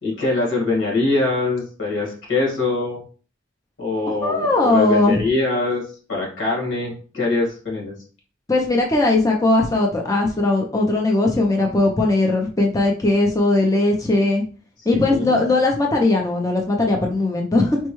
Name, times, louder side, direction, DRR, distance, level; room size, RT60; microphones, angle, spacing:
voice 1, 0.0-3.0 3.8-5.8 6.1-7.9 14.9-15.4, left 3 dB, 90° left, -2 dB, 1.7 m, -23 dB
voice 2, 4.2-5.2 8.5-14.4 14.9-17.8, left 2 dB, 20° left, 0 dB, 0.5 m, -19 dB
4.3 x 2.2 x 3.0 m, 0.40 s
head